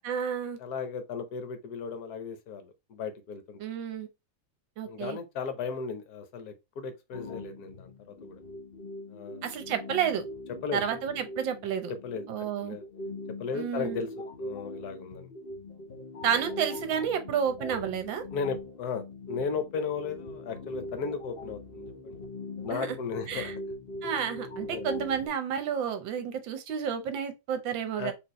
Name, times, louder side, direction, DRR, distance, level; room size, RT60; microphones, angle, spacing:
voice 1, 0.0-0.6 3.6-4.1 4.8-5.2 9.4-10.3 10.7-11.9 12.3-12.8 13.5-14.0 16.2-18.2 22.7-22.9 23.3-23.5 24.0-28.1, right 8 dB, 75° right, 1.5 m, -31 dB
voice 2, 0.6-3.6 4.9-8.4 9.1-9.5 10.6-10.8 12.0-12.8 13.4-15.3 18.3-22.2 22.6-23.5 24.7-24.8 28.0-28.1, left 5 dB, 60° left, 1.2 m, -36 dB
sound 1, 7.1-25.3, left 2 dB, 45° left, 0.8 m, -41 dB
4.5 x 3.1 x 3.1 m
omnidirectional pair, 2.1 m